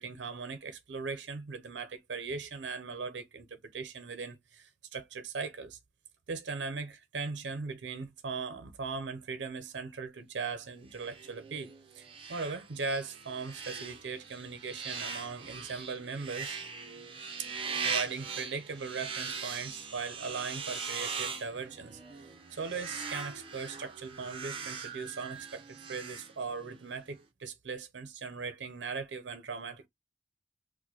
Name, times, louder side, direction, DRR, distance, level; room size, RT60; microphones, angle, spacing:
voice 1, 0.0-5.8 6.3-16.6 17.4-17.5 17.8-22.0 22.5-29.9, right 4 dB, 80° right, 0.6 m, -39 dB
sound 1, 10.9-26.8, right 5 dB, 30° right, 0.7 m, -40 dB
4.6 x 2.1 x 2.8 m
head